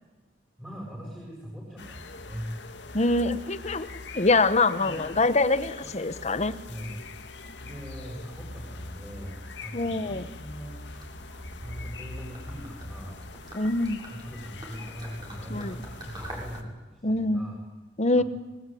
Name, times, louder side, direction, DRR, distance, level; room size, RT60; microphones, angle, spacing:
voice 1, 0.6-2.5 4.7-5.0 5.8-5.9 6.7-10.7 11.6-13.2 14.1-17.6 18.1-18.3, equal, 5° right, -3 dB, 8.0 m, -41 dB
sound 1, 1.8-16.6, left 2 dB, 75° left, 2.2 m, -42 dB
voice 2, 2.9-3.9 4.1-6.5 9.7-10.3 13.5-14.0 15.5-15.8 17.0-17.5 18.0-18.2, left 2 dB, 40° left, 13 dB, 1.3 m, -24 dB
Gurgling / Liquid, 10.9-16.7, right 1 dB, 25° right, 7.9 m, -46 dB
26.5 x 22.5 x 9.4 m, 1.2 s
head